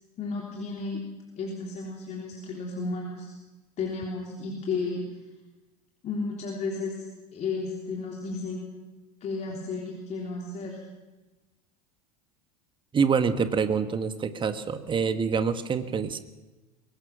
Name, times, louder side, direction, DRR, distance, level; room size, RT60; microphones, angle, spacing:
voice 1, 0.2-1.0 1.4-3.3 3.8-5.0 6.0-7.0 7.3-8.7 9.2-10.8, left 4 dB, 35° left, -1 dB, 3.6 m, -33 dB
voice 2, 12.9-16.2, right 6 dB, 25° right, 10 dB, 1.5 m, -26 dB
22.5 x 19.0 x 6.2 m, 1.1 s
figure-of-eight pair, 80°, 20 cm